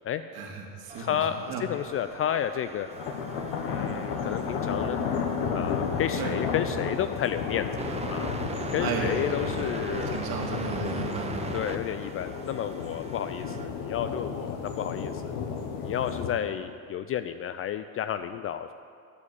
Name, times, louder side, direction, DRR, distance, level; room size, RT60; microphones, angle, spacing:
voice 1, 0.3-1.7 6.2-6.3 8.8-9.6 9.9-11.5, right 4 dB, 55° right, 1 dB, 2.2 m, -34 dB
sound 1, 0.9-13.7, right 3 dB, 15° right, 0.9 m, -40 dB
voice 2, 1.0-2.9 3.7-5.0 5.5-7.7 8.1-8.3 8.7-10.2 11.5-15.3 15.8-18.7, left 10 dB, 35° left, 11 dB, 0.4 m, -31 dB
sound 2, 2.9-16.3, left 6 dB, 60° left, 1.4 m, -32 dB
12.5 x 5.0 x 8.5 m, 2.3 s
hypercardioid pair, 85°, 44 cm